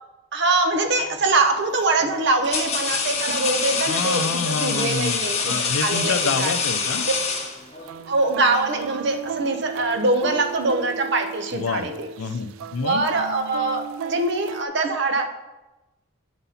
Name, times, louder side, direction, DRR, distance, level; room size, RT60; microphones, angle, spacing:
voice 1, 0.3-5.5 5.8-6.5 8.1-12.1 12.8-15.3, right 3 dB, 55° right, 6 dB, 0.8 m, -23 dB
sound 1, 0.9-1.2 2.0-8.0, left 5 dB, 30° left, 1.0 m, -26 dB
sound 2, 1.7-1.8 2.5-2.6 3.3-4.5 4.8-5.1 5.4-7.0 7.3-14.6, right 6 dB, 75° right, 0.3 m, -36 dB
voice 2, 3.9-7.0 11.5-13.0, left 5 dB, 90° left, 11 dB, 0.5 m, -28 dB
8.9 x 4.1 x 5.6 m, 1.0 s
head